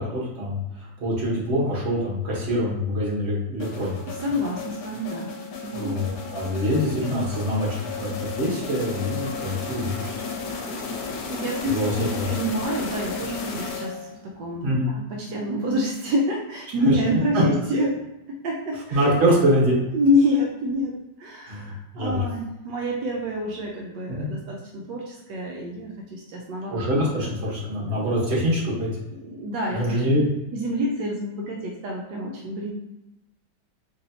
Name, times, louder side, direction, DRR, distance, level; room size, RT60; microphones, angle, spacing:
voice 1, 0.0-4.0 5.7-10.1 11.7-12.3 14.6-14.9 17.3-17.4 18.9-19.7 21.5-22.2 24.2-24.3 26.7-28.9 29.7-30.2, equal, 40° right, -6 dB, 1.4 m, -24 dB
sound 1, 3.6-14.3, left 4 dB, 75° left, 1.2 m, -34 dB
voice 2, 4.2-6.0 11.3-18.0 18.3-19.1 19.9-27.3 27.7-27.9 29.2-30.0 30.5-32.7, left 1 dB, 80° right, -2 dB, 1.2 m, -27 dB
4.1 x 3.2 x 2.7 m, 0.93 s
omnidirectional pair, 1.9 m